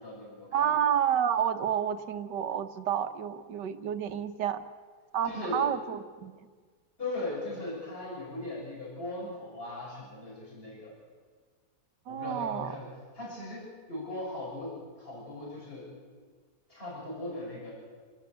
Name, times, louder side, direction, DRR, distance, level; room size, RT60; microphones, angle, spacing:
voice 1, 0.0-0.7 5.2-5.6 7.0-10.9 12.1-12.9 13.1-15.9 16.7-17.7, left 2 dB, 30° left, -5 dB, 7.1 m, -38 dB
voice 2, 0.5-4.6 5.1-6.4 12.1-12.7, right 9 dB, 85° right, 9 dB, 1.7 m, -29 dB
28.0 x 13.0 x 8.2 m, 1.6 s
omnidirectional pair, 1.8 m